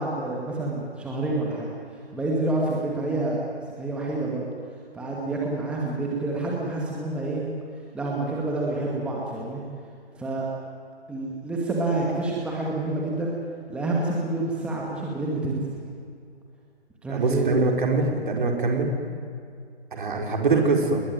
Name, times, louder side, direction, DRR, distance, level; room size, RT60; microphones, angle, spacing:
voice 1, 0.0-1.7 2.1-3.4 3.8-4.4 4.9-7.4 7.9-9.6 10.2-10.5 11.1-13.4 13.7-15.6 17.0-17.5, right 2 dB, 5° right, -3 dB, 2.2 m, -28 dB
voice 2, 17.1-18.9 19.9-21.0, right 3 dB, 45° right, 3 dB, 4.8 m, -23 dB
29.5 x 21.0 x 9.3 m, 2.4 s
figure-of-eight pair, 145°, 34 cm